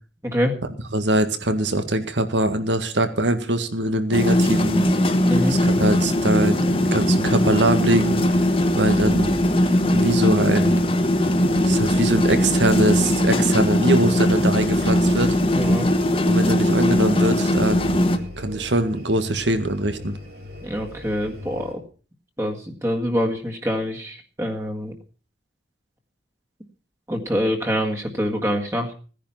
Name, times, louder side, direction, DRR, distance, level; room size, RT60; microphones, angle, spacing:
voice 1, 0.2-0.6 5.3-5.6 15.5-15.9 20.6-21.8 22.4-24.9 27.1-28.9, equal, 15° right, 2 dB, 1.8 m, -25 dB
voice 2, 0.9-4.9 5.5-8.2 8.8-9.4 9.9-10.8 11.7-15.4 16.3-18.1 18.4-20.2, right 1 dB, 85° right, 9 dB, 1.8 m, -22 dB
sound 1, 4.1-18.2, left 1 dB, 30° left, 1.3 m, -20 dB
sound 2, 8.1-21.7, left 1 dB, 55° right, 4.4 m, -39 dB
16.5 x 10.5 x 5.8 m, 0.38 s
head